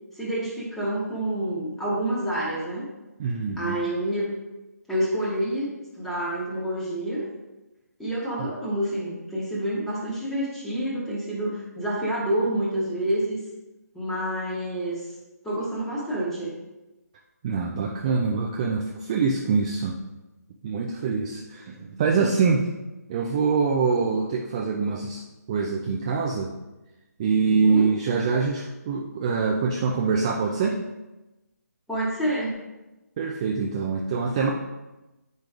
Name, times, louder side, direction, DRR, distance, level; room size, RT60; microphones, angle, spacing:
voice 1, 0.1-2.9 3.6-4.4 4.9-5.7 5.9-7.2 8.0-13.4 13.9-15.1 15.4-16.5 27.5-27.9 31.9-32.6, right 1 dB, ahead, -7 dB, 1.2 m, -28 dB
voice 2, 3.2-3.8 17.4-20.0 20.6-22.7 23.1-25.2 25.5-26.5 27.2-30.8 33.2-34.5, right 5 dB, 20° right, -1 dB, 0.4 m, -24 dB
8.7 x 5.2 x 2.4 m, 1.1 s
figure-of-eight pair, 145°, 9 cm